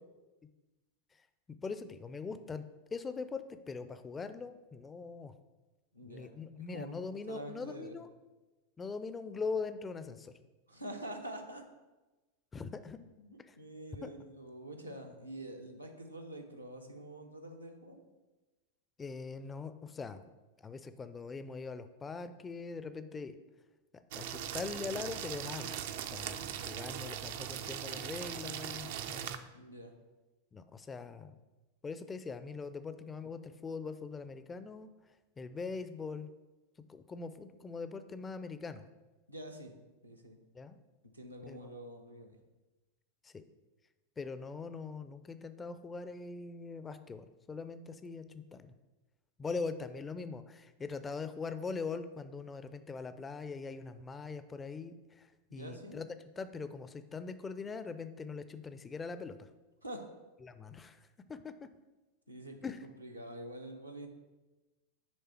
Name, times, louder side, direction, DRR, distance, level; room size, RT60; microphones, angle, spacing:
voice 1, 1.6-2.6 2.9-5.3 6.0-8.1 8.8-10.4 12.5-13.0 13.5-13.6 14.0-14.1 19.0-20.2 20.6-23.4 23.9-25.8 26.1-29.5 30.5-31.4 31.8-34.9 35.4-36.3 36.9-38.8 40.5-40.8 41.5-41.7 43.2-43.4 44.2-48.7 49.4-56.1 56.4-59.5 60.4-61.7 62.6-62.9, left 4 dB, 15° left, 11 dB, 0.4 m, -42 dB
voice 2, 5.9-6.3 6.7-7.0 7.3-8.0 10.7-11.6 13.0-18.0 29.5-29.9 39.3-39.7 40.0-40.4 41.1-42.4 55.5-56.0 59.8-60.1 62.3-62.6 63.0-64.1, right 1 dB, 85° right, 2 dB, 0.8 m, -46 dB
sound 1, 24.1-29.4, right 9 dB, 55° right, 0.4 m, -40 dB
7.5 x 3.3 x 4.4 m, 1.1 s
figure-of-eight pair, 90°, 0 cm